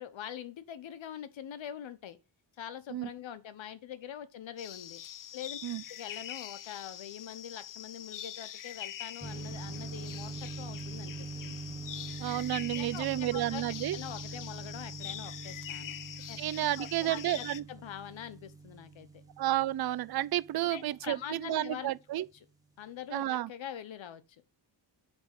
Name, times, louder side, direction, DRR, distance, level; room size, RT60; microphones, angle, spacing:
voice 1, 0.0-2.2 2.6-5.0 5.3-5.6 5.9-11.6 12.7-13.6 13.9-16.0 16.3-19.2 20.6-21.9 22.8-24.4, left 9 dB, 85° left, 1.0 m, -44 dB
sound 1, 4.6-17.6, left 11 dB, 45° left, 0.5 m, -44 dB
sound 2, 9.2-21.7, right 3 dB, 10° right, 1.1 m, -44 dB
voice 2, 12.2-14.0 16.4-17.6 19.4-22.3 23.1-23.5, right 14 dB, 55° right, 0.5 m, -31 dB
8.7 x 3.6 x 6.5 m
wide cardioid pair, 105°, 45 cm